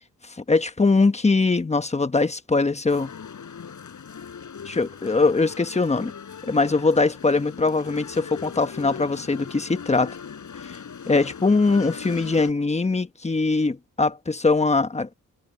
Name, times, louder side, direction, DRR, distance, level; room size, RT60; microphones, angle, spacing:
voice 1, 0.4-3.1 4.7-6.1 6.5-10.2 10.6-10.8 11.1-15.1, left 3 dB, 20° left, 1.1 m, -22 dB
sound 1, 2.9-12.5, left 6 dB, 60° left, 5.8 m, -39 dB
cardioid pair, 85°, 34 cm